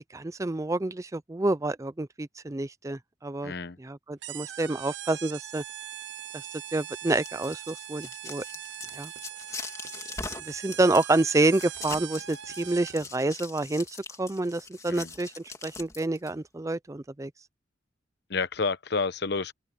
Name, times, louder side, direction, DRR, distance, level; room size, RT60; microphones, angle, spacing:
voice 1, 0.1-3.5 3.8-5.6 6.7-8.4 8.9-9.1 10.4-13.9 14.2-17.3, right 2 dB, 15° right, 0.4 m, -28 dB
voice 2, 3.4-3.8 14.9-15.1 18.3-19.5, left 4 dB, 60° left, 0.9 m, -29 dB
sound 1, 4.2-13.1, right 11 dB, 70° right, 0.7 m, -41 dB
sound 2, 6.9-16.3, left 3 dB, 15° left, 2.9 m, -42 dB
open air
head